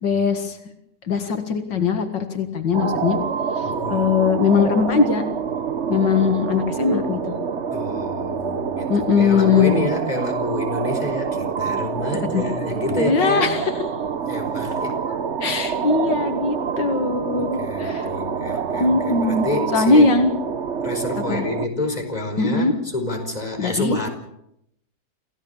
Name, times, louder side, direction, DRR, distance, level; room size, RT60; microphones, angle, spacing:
voice 1, 0.0-0.6 1.1-3.2 3.6-5.2 5.9-7.3 8.9-9.8 12.3-12.4 13.0-13.7 15.4-18.1 18.8-20.3 21.2-21.4 22.4-22.7 23.6-24.0, left 5 dB, 85° left, 6 dB, 2.5 m, -20 dB
sound 1, 2.7-21.7, right 6 dB, 45° right, 1.2 m, -27 dB
voice 2, 3.6-4.1 7.7-13.5 14.3-15.0 17.6-20.1 20.8-24.1, left 2 dB, 20° left, 4 dB, 5.0 m, -28 dB
28.5 x 16.5 x 7.2 m, 0.80 s
omnidirectional pair, 1.9 m